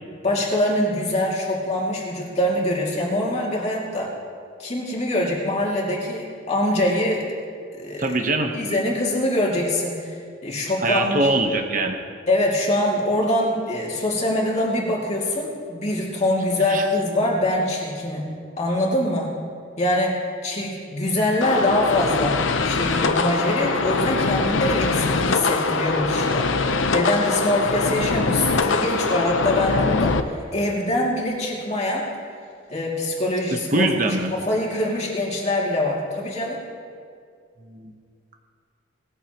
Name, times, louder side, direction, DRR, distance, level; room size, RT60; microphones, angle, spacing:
voice 1, 0.2-4.1 4.6-7.3 7.8-8.1 8.5-10.2 10.4-11.3 12.3-19.4 19.8-32.1 32.7-36.6, left 1 dB, 35° left, -3 dB, 2.5 m, -24 dB
voice 2, 8.0-8.5 10.8-12.0 16.7-16.8 33.5-34.3 37.7-37.9, right 2 dB, 40° right, 4 dB, 1.0 m, -22 dB
sound 1, 21.4-30.2, left 3 dB, 80° left, 0.7 m, -22 dB
19.5 x 14.5 x 3.0 m, 2.2 s
head